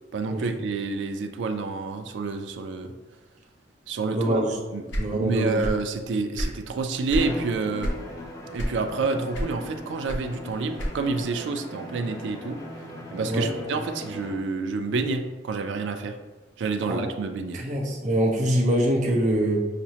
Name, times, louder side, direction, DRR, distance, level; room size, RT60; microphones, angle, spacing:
voice 1, 0.1-2.9 3.9-4.4 4.7-7.9 8.5-12.6 13.1-16.2 16.6-17.6, right 4 dB, 90° right, 7 dB, 0.3 m, -28 dB
voice 2, 4.1-4.5 5.0-5.7 13.3-13.5 16.9-17.0 17.5-19.6, right 1 dB, 40° right, -1 dB, 0.6 m, -24 dB
sound 1, 4.9-5.9 6.2-7.3 7.8-8.1 8.5-9.0 9.3-11.2, equal, 80° left, 0.7 m, -29 dB
Bowed string instrument, 7.1-14.5, left 1 dB, 20° left, 0.5 m, -39 dB
5.8 x 2.0 x 2.8 m, 1.2 s
head